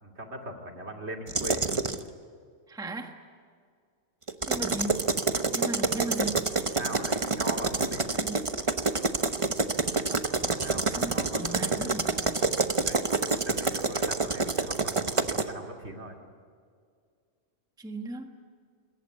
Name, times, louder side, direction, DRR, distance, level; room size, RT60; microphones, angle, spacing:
voice 1, 0.0-1.7 6.6-8.0 10.5-11.7 12.8-13.0 13.4-16.2, right 1 dB, 60° right, 2 dB, 2.9 m, -40 dB
sound 1, 1.3-2.0 4.3-15.5, right 3 dB, 25° right, 1.0 m, -27 dB
voice 2, 2.7-3.2 4.5-5.1 5.5-6.6 7.8-8.5 10.9-12.2 17.8-18.3, right 2 dB, 5° right, 4 dB, 1.4 m, -37 dB
26.0 x 22.0 x 8.4 m, 2.1 s
omnidirectional pair, 1.3 m